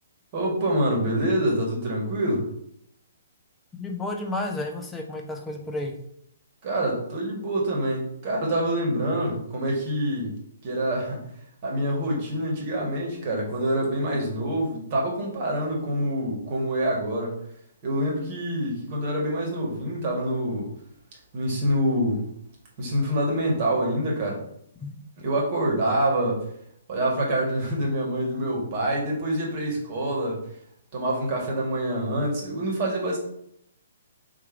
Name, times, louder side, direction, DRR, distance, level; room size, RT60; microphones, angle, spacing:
voice 1, 0.3-2.5 6.6-10.3 10.6-11.2 11.6-17.3 17.8-20.7 21.3-22.2 22.8-24.4 25.2-26.4 26.9-30.4 30.9-33.2, right 1 dB, 45° right, -2 dB, 1.7 m, -26 dB
voice 2, 3.7-5.9 24.8-24.9, left 2 dB, 10° left, 1 dB, 0.8 m, -31 dB
3.6 x 3.1 x 4.5 m, 0.73 s
hypercardioid pair, 130°, 0 cm